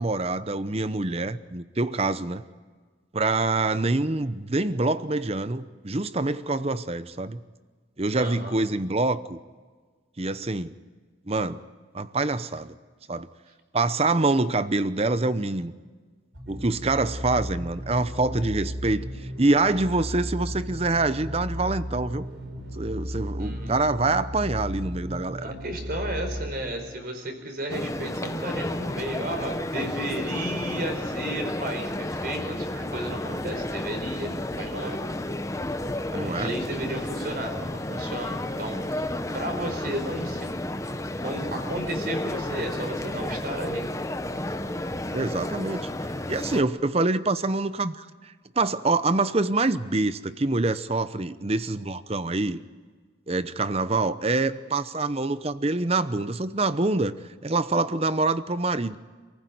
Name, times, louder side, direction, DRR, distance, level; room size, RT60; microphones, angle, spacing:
voice 1, 0.0-2.4 3.1-7.4 8.0-9.4 10.2-10.7 11.3-11.6 11.9-12.8 13.1-13.3 13.7-15.7 16.5-22.3 22.7-25.5 36.1-36.5 45.1-45.9 46.3-52.6 53.3-57.1 57.4-59.0, right 2 dB, 30° right, 14 dB, 0.8 m, -25 dB
voice 2, 8.2-8.6 23.4-23.8 25.4-35.0 36.1-38.8 39.3-40.5 41.1-43.9, right 1 dB, 50° right, 5 dB, 4.5 m, -33 dB
sound 1, 16.3-27.1, equal, 75° right, 5.2 m, -35 dB
sound 2, 27.7-46.6, left 1 dB, 15° left, 0.8 m, -32 dB
28.0 x 15.5 x 9.5 m, 1.5 s
head